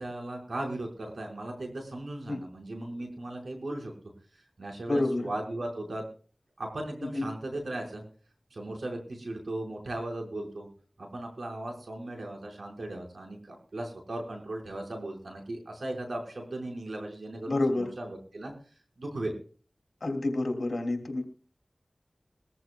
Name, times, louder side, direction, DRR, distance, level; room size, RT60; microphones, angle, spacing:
voice 1, 0.0-3.9 4.6-6.0 6.6-8.0 8.5-10.7 11.0-18.5 19.0-19.3, right 1 dB, 90° right, 2 dB, 4.8 m, -37 dB
voice 2, 4.9-5.3 7.0-7.2 17.5-17.9 20.0-21.2, left 2 dB, 75° left, 5 dB, 2.8 m, -28 dB
22.0 x 14.5 x 2.3 m, 0.39 s
wide cardioid pair, 45°, 0 cm